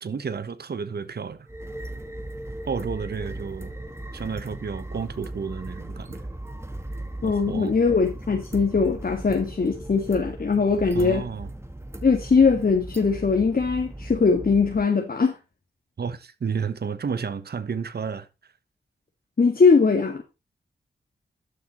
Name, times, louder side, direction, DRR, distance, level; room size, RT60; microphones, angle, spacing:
voice 1, 0.0-1.5 2.7-3.7 4.1-6.2 7.2-7.7 10.9-11.5 16.0-18.3, right 6 dB, 60° right, 1.1 m, -31 dB
sound 1, 1.5-14.8, right 1 dB, 15° right, 1.8 m, -37 dB
voice 2, 7.2-11.3 12.0-15.4 19.4-20.2, left 4 dB, 50° left, 1.8 m, -21 dB
12.0 x 6.7 x 3.1 m
cardioid pair, 45°, 19 cm